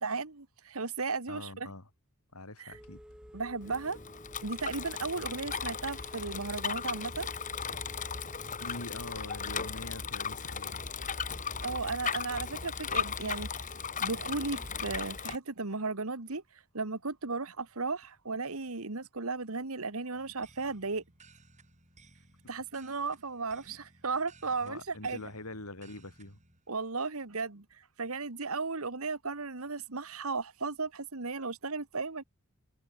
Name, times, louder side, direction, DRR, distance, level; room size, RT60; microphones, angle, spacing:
voice 1, 0.0-1.7 2.6-2.7 3.3-4.0 4.4-7.3 11.6-13.7 14.0-16.4 16.7-21.0 22.5-25.2 26.7-27.6 28.0-32.2, right 4 dB, 75° right, 1.7 m, -35 dB
voice 2, 1.3-1.9 2.3-3.0 8.6-10.9 24.6-26.4, left 2 dB, 80° left, 5.8 m, -44 dB
Telephone, 2.7-9.7, equal, 5° right, 7.7 m, -51 dB
Bicycle, 3.6-15.4, left 6 dB, 35° left, 2.5 m, -37 dB
sound 1, 20.1-26.6, right 3 dB, 35° right, 7.4 m, -60 dB
head